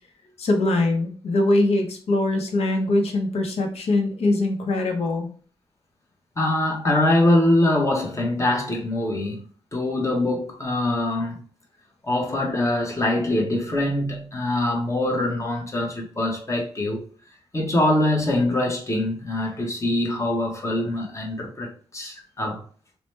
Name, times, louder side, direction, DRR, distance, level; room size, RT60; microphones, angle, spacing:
voice 1, 0.4-5.3, left 2 dB, 70° left, 0.7 m, -22 dB
voice 2, 6.4-9.4 9.7-11.4 12.0-17.0 17.5-22.6, left 1 dB, 30° left, 0.9 m, -23 dB
2.8 x 2.1 x 3.2 m
cardioid pair, 75°, 11 cm